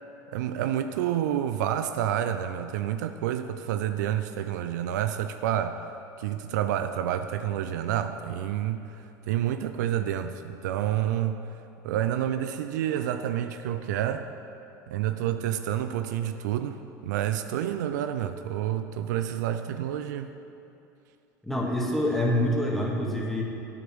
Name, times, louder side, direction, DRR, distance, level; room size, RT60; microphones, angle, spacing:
voice 1, 0.3-5.8 6.2-11.4 11.8-14.3 14.9-20.3, right 11 dB, 70° right, 9 dB, 0.5 m, -29 dB
voice 2, 21.4-23.4, left 1 dB, 5° left, -2 dB, 2.2 m, -26 dB
9.8 x 7.6 x 6.2 m, 2.7 s
hypercardioid pair, 80°, 10 cm